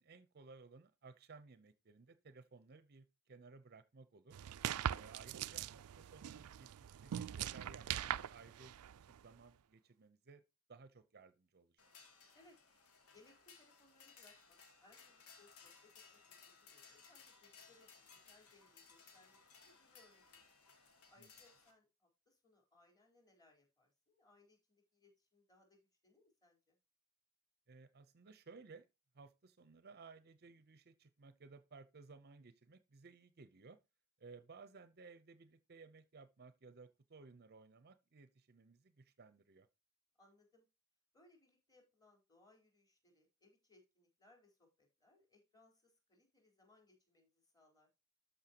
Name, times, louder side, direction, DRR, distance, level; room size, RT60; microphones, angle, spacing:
voice 1, 0.0-4.4 4.9-6.7 7.0-8.7 9.0-10.4 10.7-11.9 21.2-21.3 27.7-28.9 29.1-33.8 34.2-39.7, right 4 dB, 45° right, 0.7 m, -59 dB
sound 1, 4.3-9.3, right 10 dB, 85° right, 0.4 m, -42 dB
sound 2, 11.8-21.7, left 5 dB, 90° left, 2.7 m, -62 dB
voice 2, 13.1-20.4 21.1-26.8 40.2-40.6 41.1-47.9, left 2 dB, 20° left, 3.9 m, -70 dB
12.5 x 5.6 x 2.9 m
head